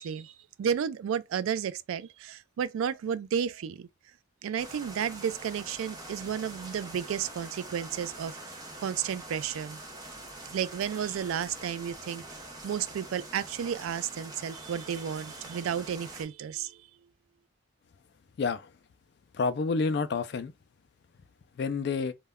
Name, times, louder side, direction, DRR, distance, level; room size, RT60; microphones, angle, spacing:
voice 1, 0.0-3.9 4.4-9.8 10.5-12.2 12.6-16.8, right 8 dB, 80° right, 0.3 m, -32 dB
sound 1, 4.6-16.2, right 1 dB, 20° right, 0.5 m, -44 dB
voice 2, 18.4-18.7 19.3-20.5 21.6-22.1, left 4 dB, 55° left, 0.3 m, -29 dB
2.2 x 2.1 x 3.4 m
head